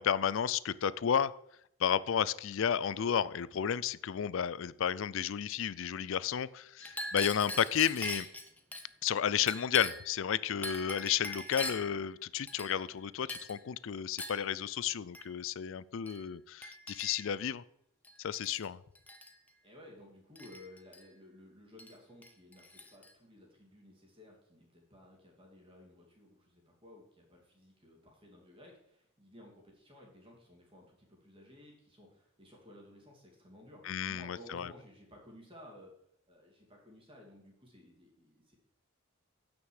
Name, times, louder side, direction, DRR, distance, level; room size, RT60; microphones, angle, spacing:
voice 1, 0.0-1.3 1.8-8.3 9.0-17.6 18.2-18.8 33.9-34.7, left 8 dB, 60° left, 19 dB, 0.4 m, -32 dB
Chink clink, 6.8-8.9 9.5-10.1 10.6-12.0 12.5-13.0 13.3-13.6 14.2-14.5 15.1-15.3 16.1-16.2 16.6-17.3 18.0-18.7 19.0-19.3 20.4-21.0 21.8-21.9 22.2-23.1, left 1 dB, 5° left, 0.8 m, -42 dB
voice 2, 19.6-22.6 22.9-35.9 36.3-38.5, left 1 dB, 25° right, -1 dB, 2.7 m, -56 dB
9.4 x 6.1 x 6.5 m, 0.75 s
head